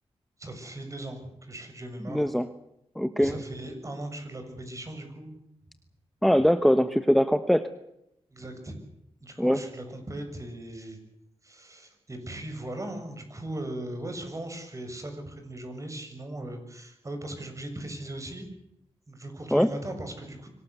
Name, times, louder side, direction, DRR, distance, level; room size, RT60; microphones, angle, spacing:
voice 1, 0.4-2.3 3.2-5.3 8.3-8.7 9.2-11.0 11.4-18.5 19.1-20.5, right 1 dB, 30° right, 6 dB, 7.1 m, -38 dB
voice 2, 2.1-2.5 3.0-3.4 6.2-7.7 9.4-9.6 19.5-19.7, equal, ahead, 10 dB, 1.2 m, -22 dB
24.5 x 18.5 x 8.2 m, 0.80 s
cardioid pair, 85°, 11 cm